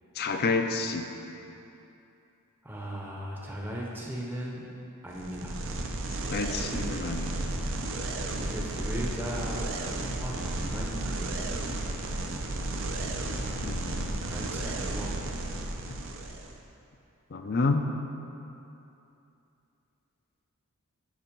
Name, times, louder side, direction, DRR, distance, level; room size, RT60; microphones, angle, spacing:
voice 1, 0.2-1.1 6.3-7.5 13.6-14.2 17.3-17.8, left 3 dB, 45° left, 5 dB, 0.5 m, -29 dB
voice 2, 2.6-4.7 5.0-5.6 8.3-11.5 11.8-12.4 14.1-15.1, equal, 10° right, -3 dB, 0.8 m, -38 dB
sound 1, 5.1-16.6, right 2 dB, 60° right, 0.6 m, -33 dB
7.2 x 5.5 x 5.3 m, 2.8 s
head